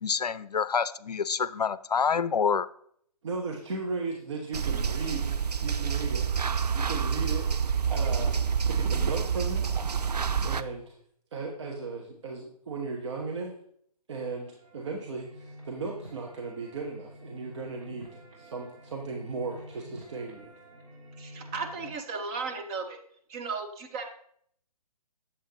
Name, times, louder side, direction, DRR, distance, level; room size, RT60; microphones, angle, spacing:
voice 1, 0.0-2.7, left 6 dB, 80° left, 16 dB, 0.4 m, -27 dB
voice 2, 3.2-6.3 6.7-7.5 7.9-8.3 8.7-9.6 10.4-10.9 11.3-13.5 14.1-20.5, right 4 dB, 45° right, 0 dB, 1.1 m, -36 dB
sound 1, 4.5-10.6, right 6 dB, 85° right, 0.5 m, -28 dB
sound 2, 14.3-21.9, equal, 65° right, 3.1 m, -49 dB
voice 3, 21.2-23.0 23.3-24.0, right 4 dB, 10° right, 3 dB, 0.4 m, -35 dB
8.3 x 7.4 x 2.9 m, 0.66 s
figure-of-eight pair, 135°, 20 cm